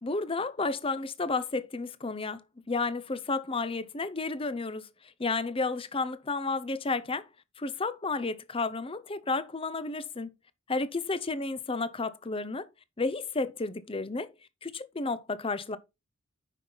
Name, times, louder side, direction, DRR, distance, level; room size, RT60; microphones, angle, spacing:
voice 1, 0.0-4.9 5.2-7.2 7.6-10.3 10.7-12.7 13.0-14.3 14.6-15.8, left 3 dB, 25° left, 0.7 m, -32 dB
9.1 x 5.7 x 3.9 m
head